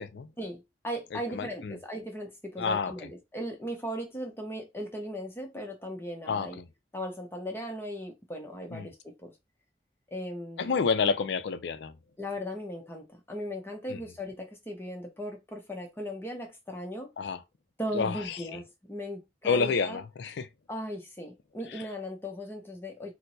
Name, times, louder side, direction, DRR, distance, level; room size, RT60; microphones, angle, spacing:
voice 1, 0.4-6.6 6.9-9.3 10.1-10.7 12.2-17.1 17.8-20.0 20.7-23.1, equal, 15° left, 0.6 m, -38 dB
voice 2, 1.1-1.8 2.6-2.9 6.3-6.7 8.7-8.9 10.6-11.9 13.9-14.0 17.2-17.4 17.9-18.6 19.4-20.5 21.7-21.8, left 5 dB, 75° left, 0.4 m, -29 dB
4.4 x 2.0 x 2.7 m
head